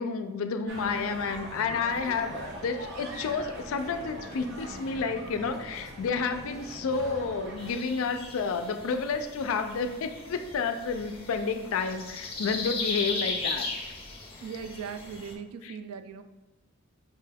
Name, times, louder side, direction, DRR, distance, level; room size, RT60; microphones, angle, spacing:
voice 1, 0.0-13.7 15.6-15.8, left 5 dB, 70° left, 8 dB, 0.4 m, -30 dB
sound 1, 0.7-7.7, right 1 dB, 50° right, 0.6 m, -42 dB
sound 2, 7.6-15.3, left 3 dB, 25° left, 0.7 m, -37 dB
voice 2, 14.4-16.2, right 6 dB, 85° right, 10 dB, 0.3 m, -39 dB
5.5 x 2.2 x 3.3 m, 1.1 s
head